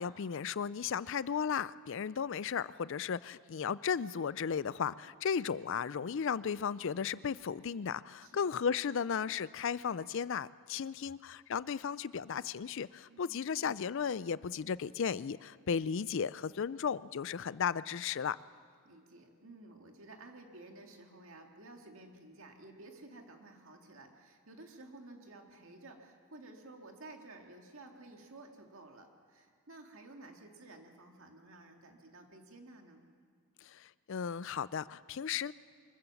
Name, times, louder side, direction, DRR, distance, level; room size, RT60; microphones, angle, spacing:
voice 1, 0.0-18.4 33.6-35.5, left 7 dB, 60° left, 18 dB, 0.4 m, -35 dB
voice 2, 13.1-13.5 18.8-33.0, right 2 dB, 65° right, 3 dB, 2.1 m, -53 dB
24.5 x 15.0 x 7.1 m, 2.1 s
head